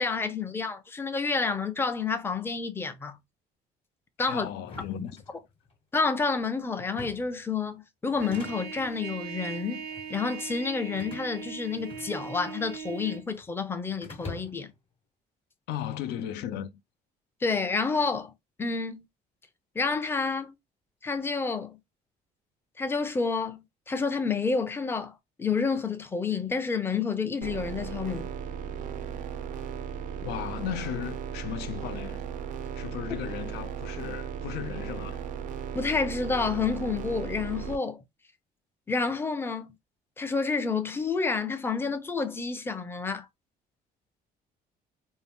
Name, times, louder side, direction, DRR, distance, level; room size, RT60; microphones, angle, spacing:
voice 1, 0.0-3.2 4.2-4.5 4.9-5.1 5.9-14.7 17.4-18.3 18.6-19.0 19.7-20.5 21.0-21.8 22.8-25.1 25.4-28.3 35.7-38.0 38.9-39.7 40.2-43.3, left 4 dB, 15° left, 0.4 m, -29 dB
voice 2, 4.3-5.2 15.7-16.7 30.2-32.3 32.7-35.3, left 10 dB, 80° left, 0.4 m, -36 dB
sound 1, 4.6-5.8 6.8-7.4 8.1-8.9 9.7-10.1 11.0-12.5 12.7-13.5 14.0-14.8, left 3 dB, 35° left, 1.0 m, -45 dB
Trumpet, 8.2-13.2, right 7 dB, 85° right, 0.7 m, -40 dB
sound 2, 27.4-37.8, right 8 dB, 50° right, 0.4 m, -36 dB
2.7 x 2.0 x 3.4 m
cardioid pair, 110°, 17 cm